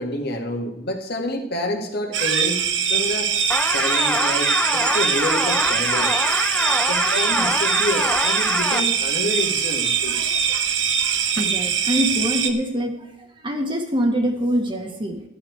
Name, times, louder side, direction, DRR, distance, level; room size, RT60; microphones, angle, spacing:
voice 1, 0.0-3.4 3.6-6.1 6.8-10.2, left 1 dB, 55° left, 2 dB, 2.0 m, -28 dB
sound 1, 2.1-12.5, right 7 dB, 70° right, 1.2 m, -22 dB
sound 2, 3.5-8.8, left 1 dB, 5° left, 0.7 m, -24 dB
voice 2, 11.4-12.9 13.4-15.2, equal, 25° right, 3 dB, 1.6 m, -24 dB
13.0 x 11.5 x 4.7 m, 0.90 s
head